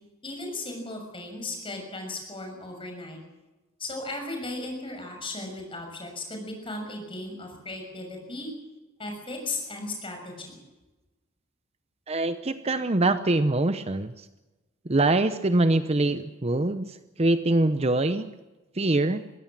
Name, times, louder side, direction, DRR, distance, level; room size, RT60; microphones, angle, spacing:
voice 1, 0.2-3.2 3.8-8.5 9.0-10.6, left 2 dB, 25° left, 3 dB, 6.6 m, -36 dB
voice 2, 12.1-14.3 14.9-18.3 18.8-19.2, right 2 dB, 30° right, 11 dB, 0.7 m, -24 dB
22.0 x 16.5 x 7.5 m, 1.1 s
head